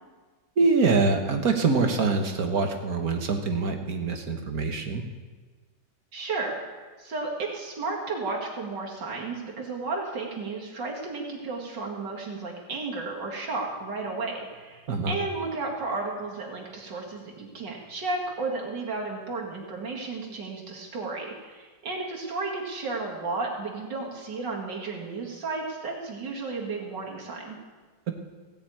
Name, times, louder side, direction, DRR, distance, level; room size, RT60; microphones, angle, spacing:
voice 1, 0.6-5.0 14.9-15.2, right 4 dB, 55° right, 4 dB, 1.7 m, -24 dB
voice 2, 6.1-6.6 7.0-27.6, right 3 dB, 75° right, -2 dB, 2.7 m, -33 dB
17.0 x 6.8 x 8.7 m, 1.4 s
omnidirectional pair, 1.9 m